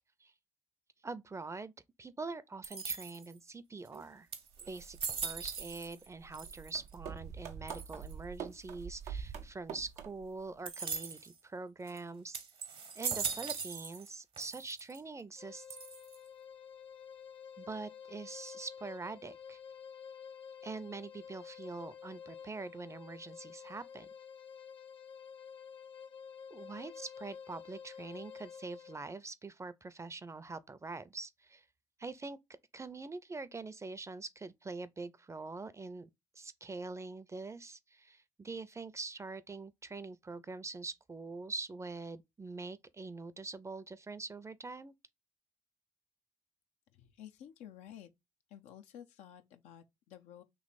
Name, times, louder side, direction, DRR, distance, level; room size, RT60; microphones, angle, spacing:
voice 1, 1.0-1.7 2.0-4.3 4.7-12.4 13.0-15.7 17.6-19.6 20.6-24.1 26.5-31.6 32.0-32.4 32.7-36.1 36.4-44.9, right 3 dB, 25° right, 0.5 m, -44 dB
sound 1, 2.6-3.4 3.9-4.0 4.3-6.1 6.3-6.9 7.7-8.1 10.7-11.3 11.9-12.0 12.3-14.1 14.4-15.0 15.7-16.3, right 5 dB, 55° right, 0.8 m, -40 dB
sound 2, 3.9-4.0 4.5-10.4, right 7 dB, 80° right, 0.6 m, -46 dB
sound 3, 15.4-29.0, left 7 dB, 45° left, 0.7 m, -50 dB
voice 2, 47.0-48.1 48.5-50.4, left 10 dB, 85° left, 0.5 m, -52 dB
3.1 x 2.9 x 4.0 m
supercardioid pair, 50°, 11 cm